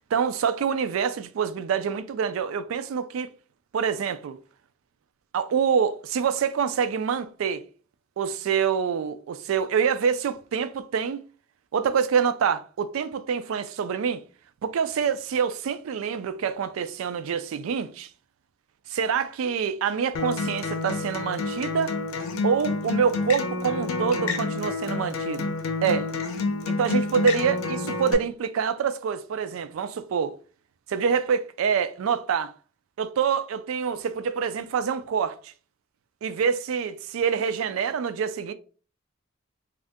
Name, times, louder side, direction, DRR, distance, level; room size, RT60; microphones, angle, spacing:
voice 1, 0.1-3.3 3.7-4.4 5.3-7.6 8.2-11.2 11.7-14.2 14.6-18.1 18.9-22.0 22.4-25.5 25.8-26.1 26.7-30.3 30.9-32.5 33.0-35.5 36.2-38.5, right 6 dB, 80° right, 0.3 m, -26 dB
Acoustic guitar, 20.1-28.1, left 3 dB, 85° left, 0.5 m, -29 dB
2.6 x 2.4 x 3.5 m
head